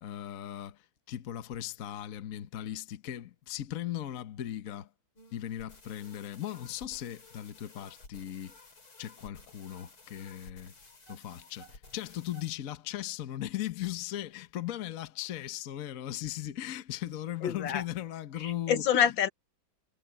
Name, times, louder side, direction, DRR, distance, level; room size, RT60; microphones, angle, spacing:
voice 1, 0.0-4.9 5.3-8.5 9.0-10.7 11.1-18.8, left 12 dB, 50° left, 1.1 m, -38 dB
sound 1, 5.2-12.5, left 2 dB, 85° left, 6.1 m, -54 dB
voice 2, 17.4-17.8 18.4-19.3, left 9 dB, 70° left, 1.7 m, -27 dB
omnidirectional pair, 2.3 m